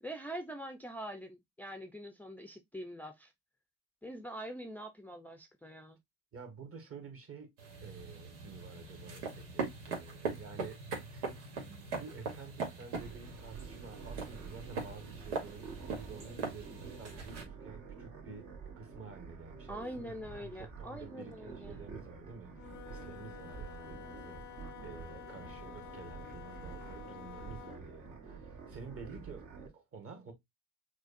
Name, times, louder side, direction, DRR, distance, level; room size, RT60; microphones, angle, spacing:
voice 1, 0.0-3.3 4.0-6.0 19.7-21.9, equal, 5° left, 0.6 m, -44 dB
voice 2, 6.3-7.5 7.8-10.8 11.1-18.5 18.7-30.3, right 4 dB, 40° right, 1.7 m, -50 dB
sound 1, 7.6-17.4, right 4 dB, 90° right, 1.6 m, -41 dB
sound 2, 12.9-29.7, right 5 dB, 60° right, 1.7 m, -49 dB
Wind instrument woodwind instrument, 22.5-27.9, left 12 dB, 55° left, 0.6 m, -50 dB
6.1 x 2.4 x 2.6 m
supercardioid pair, 90°, 34 cm